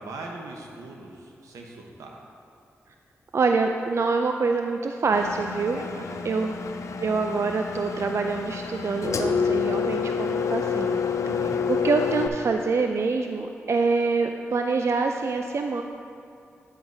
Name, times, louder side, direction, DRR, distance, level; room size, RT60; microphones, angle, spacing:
voice 1, 0.0-2.2 5.7-6.2 11.2-11.5, right 2 dB, 85° right, 0 dB, 0.9 m, -40 dB
voice 2, 3.3-5.9 6.2-6.6 7.0-11.0 11.7-15.8, right 4 dB, 55° right, 4 dB, 0.4 m, -25 dB
Engine, 5.1-12.3, left 6 dB, 70° left, 0.5 m, -28 dB
10.0 x 7.8 x 2.7 m, 2.6 s
supercardioid pair, 40°, 5 cm